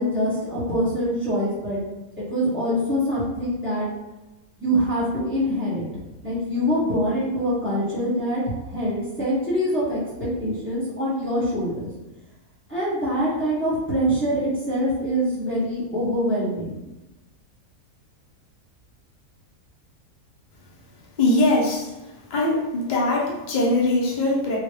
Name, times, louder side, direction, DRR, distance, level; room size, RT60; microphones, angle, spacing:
voice 1, 0.0-1.8 2.2-3.9 4.6-5.9 6.2-11.9 12.7-16.7, equal, 10° right, -10 dB, 1.4 m, -24 dB
voice 2, 21.2-21.9 22.3-24.6, left 2 dB, 50° left, -3 dB, 0.5 m, -21 dB
3.2 x 2.4 x 3.1 m, 1.0 s
omnidirectional pair, 1.6 m